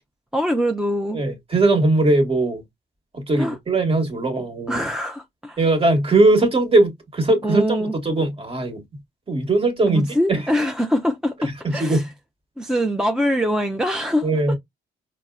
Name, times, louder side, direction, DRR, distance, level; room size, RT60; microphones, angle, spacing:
voice 1, 0.3-1.2 3.3-3.6 4.7-5.6 7.4-7.9 9.8-12.0 12.6-14.5, equal, 5° right, 0.4 m, -23 dB
voice 2, 1.1-2.6 3.1-4.8 5.6-8.8 9.3-10.4 11.6-12.1 14.2-14.5, right 2 dB, 30° right, 1.2 m, -20 dB
4.1 x 2.1 x 2.2 m
cardioid pair, 90°, 20 cm